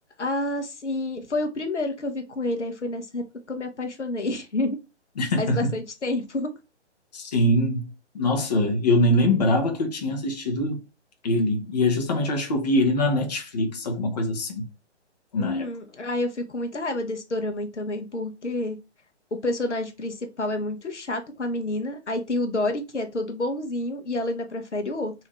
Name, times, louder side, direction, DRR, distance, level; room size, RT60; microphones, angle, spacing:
voice 1, 0.2-4.8 5.4-6.5 15.4-18.8 19.3-25.1, left 2 dB, 75° left, 0.8 m, -29 dB
voice 2, 5.2-5.7 7.1-7.9 8.1-10.8 11.2-14.6 15.3-15.7, left 1 dB, 35° left, 0.7 m, -23 dB
3.4 x 2.7 x 2.9 m
figure-of-eight pair, 135°, 35 cm